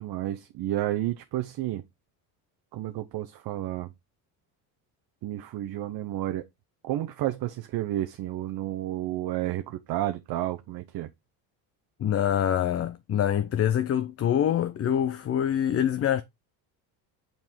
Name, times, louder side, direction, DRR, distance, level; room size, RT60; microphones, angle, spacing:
voice 1, 0.0-1.8 2.7-3.9 5.2-6.4 6.8-11.1, right 14 dB, 55° right, 0.8 m, -31 dB
voice 2, 12.0-16.2, left 10 dB, 35° left, 0.5 m, -25 dB
5.5 x 4.5 x 4.3 m
supercardioid pair, 85°, 44 cm